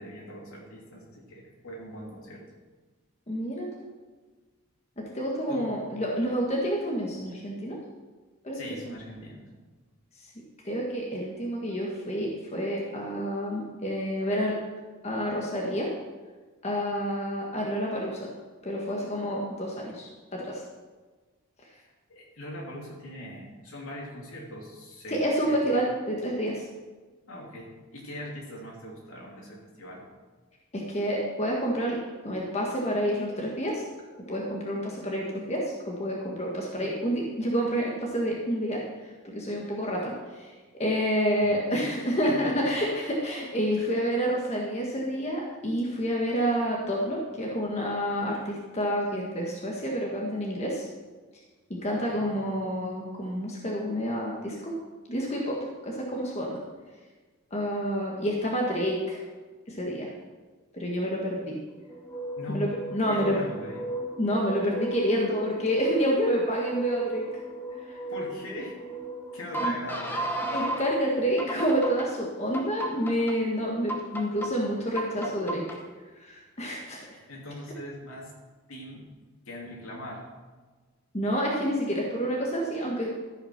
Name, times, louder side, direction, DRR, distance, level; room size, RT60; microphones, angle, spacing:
voice 1, 0.0-2.4 5.5-5.7 8.5-9.4 22.1-25.6 27.3-30.0 41.7-42.5 43.8-43.9 52.1-52.3 62.4-62.7 63.0-63.8 68.1-68.8 69.3-70.7 77.3-78.3 78.7-79.0 79.5-80.3, equal, 75° left, -2 dB, 2.9 m, -41 dB
voice 2, 3.3-3.7 5.1-7.8 8.4-8.6 10.6-14.6 15.0-15.9 16.6-18.3 18.6-20.6 25.1-26.6 30.7-33.8 34.3-38.8 39.2-50.8 51.7-54.7 55.1-55.6 55.8-56.6 57.5-59.2 59.7-60.1 60.7-61.5 62.5-63.4 64.2-67.2 67.9-68.0 69.6-69.8 70.5-75.6 76.2-77.0 81.1-83.1, equal, 30° left, -2 dB, 1.4 m, -28 dB
sound 1, 61.9-70.9 71.4-72.1 72.5-73.3 73.9-74.5 75.0-75.8, right 1 dB, 10° left, 1.0 m, -35 dB
13.5 x 5.8 x 5.8 m, 1.3 s
head